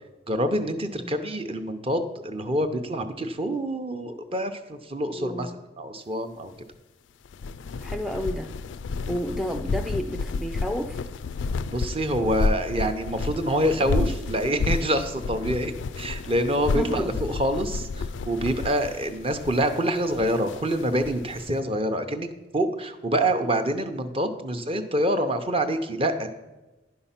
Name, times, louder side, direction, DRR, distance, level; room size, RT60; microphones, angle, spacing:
voice 1, 0.3-5.5 5.8-6.5 11.6-22.3 22.5-26.3, right 1 dB, 30° right, 7 dB, 0.8 m, -26 dB
voice 2, 5.1-5.6 7.8-8.5 9.1-11.0 16.7-17.1, equal, ahead, 5 dB, 0.4 m, -31 dB
sound 1, 7.3-21.4, left 4 dB, 90° left, 0.4 m, -31 dB
10.5 x 5.6 x 5.7 m, 1.1 s
head